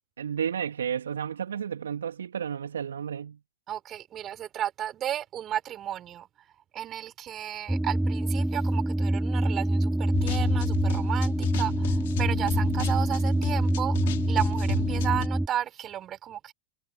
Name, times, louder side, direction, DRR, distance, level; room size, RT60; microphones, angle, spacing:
voice 1, 0.2-3.4, right 8 dB, 70° right, 2.3 m, -32 dB
voice 2, 3.7-6.3 6.7-14.0 14.3-16.5, right 11 dB, 30° right, 4.1 m, -33 dB
sound 1, 7.7-15.5, right 1 dB, 5° right, 3.5 m, -26 dB
sound 2, 10.1-15.3, left 15 dB, 60° left, 2.9 m, -34 dB
figure-of-eight pair, 95°, 0 cm